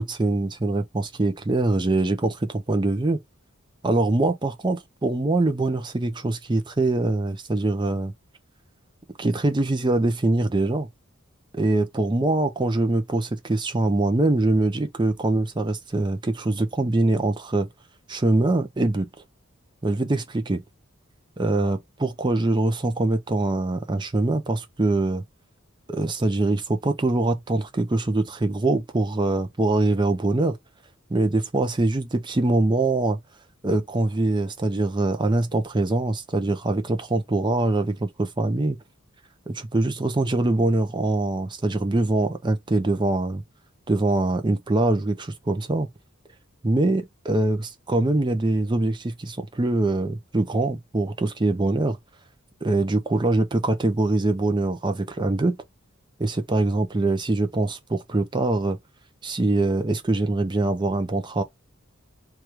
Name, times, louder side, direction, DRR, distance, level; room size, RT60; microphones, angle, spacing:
voice 1, 0.0-3.2 3.8-8.1 9.2-10.9 11.5-17.7 18.1-19.1 19.8-20.6 21.4-25.2 25.9-30.6 31.1-33.2 33.6-38.8 39.5-43.4 43.9-45.9 46.6-52.0 52.6-55.6 56.2-58.8 59.2-61.4, right 2 dB, 20° right, 0.5 m, -23 dB
3.2 x 2.4 x 4.3 m
head